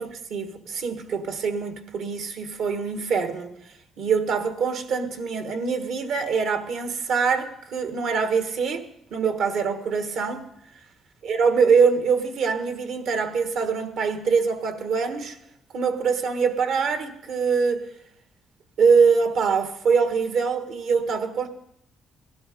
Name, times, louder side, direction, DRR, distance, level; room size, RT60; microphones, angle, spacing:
voice 1, 0.0-3.5 4.0-10.5 11.2-15.4 15.7-17.8 18.8-21.5, right 5 dB, 75° right, 1.4 m, -24 dB
16.5 x 12.0 x 5.2 m
cardioid pair, 90°, 0 cm